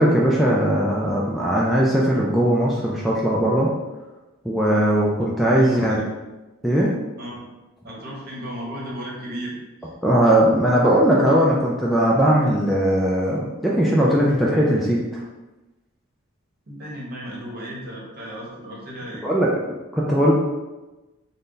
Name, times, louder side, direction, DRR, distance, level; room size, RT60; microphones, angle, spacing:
voice 1, 0.0-3.7 4.4-6.0 6.6-6.9 10.0-15.2 19.2-19.5 19.9-20.3, right 1 dB, ahead, -5 dB, 0.3 m, -19 dB
voice 2, 5.6-6.0 7.2-7.4 7.8-9.9 16.7-19.3, equal, 45° right, -4 dB, 1.0 m, -35 dB
3.8 x 2.2 x 3.7 m, 1.1 s
head